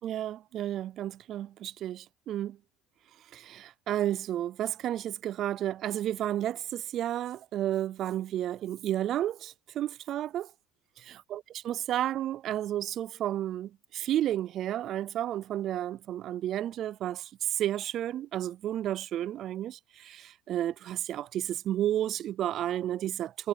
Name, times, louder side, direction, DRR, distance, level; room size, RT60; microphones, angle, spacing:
voice 1, 0.0-2.6 3.3-10.5 11.0-23.5, right 12 dB, 50° right, 0.4 m, -32 dB
cardioid pair, 120°, 0 cm